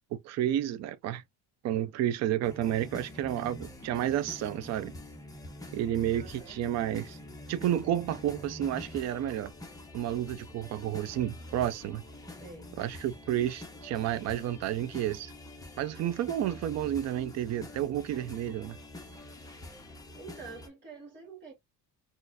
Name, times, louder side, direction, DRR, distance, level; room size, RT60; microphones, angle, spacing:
voice 1, 0.1-1.2 1.6-4.9 5.7-7.2 7.5-9.5 9.9-12.0 12.8-15.3 15.8-18.8, right 11 dB, 45° right, 0.4 m, -31 dB
sound 1, 2.4-20.7, left 1 dB, 10° left, 0.6 m, -46 dB
voice 2, 6.1-6.6 12.4-12.7 20.2-21.5, right 4 dB, 25° right, 1.3 m, -47 dB
3.9 x 2.5 x 2.4 m
cardioid pair, 155°, 40 cm